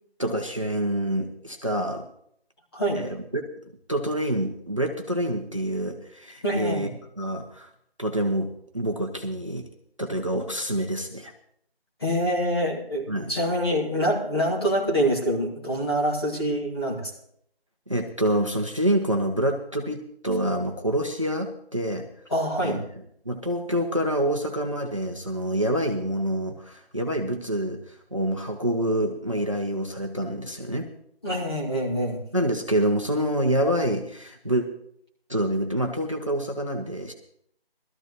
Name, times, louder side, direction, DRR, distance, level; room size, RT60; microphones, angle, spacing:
voice 1, 0.2-2.1 2.9-3.5 3.9-6.9 7.2-7.7 8.0-9.7 10.0-11.3 13.1-13.3 17.9-22.1 22.6-22.8 23.3-30.9 32.3-34.7 35.3-37.1, right 1 dB, 30° right, 3 dB, 0.8 m, -27 dB
voice 2, 6.4-6.9 12.0-17.1 22.3-22.8 31.2-32.2, equal, 25° left, -4 dB, 2.3 m, -25 dB
20.0 x 13.5 x 3.0 m, 0.68 s
figure-of-eight pair, 175°, 31 cm